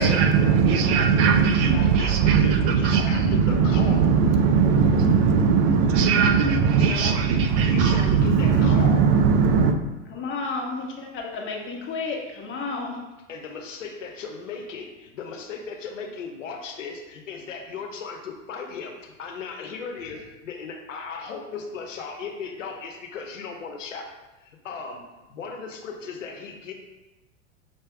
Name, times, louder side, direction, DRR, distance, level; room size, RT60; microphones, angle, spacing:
voice 1, 0.0-9.8, right 6 dB, 40° right, 0.7 m, -19 dB
voice 2, 0.7-1.2 1.5-4.1 6.8-9.1 13.3-24.1 24.6-26.7, left 5 dB, 75° left, 1.0 m, -37 dB
voice 3, 10.1-13.0, left 4 dB, 30° left, 1.4 m, -31 dB
6.1 x 3.3 x 4.6 m
figure-of-eight pair, 90°, 38 cm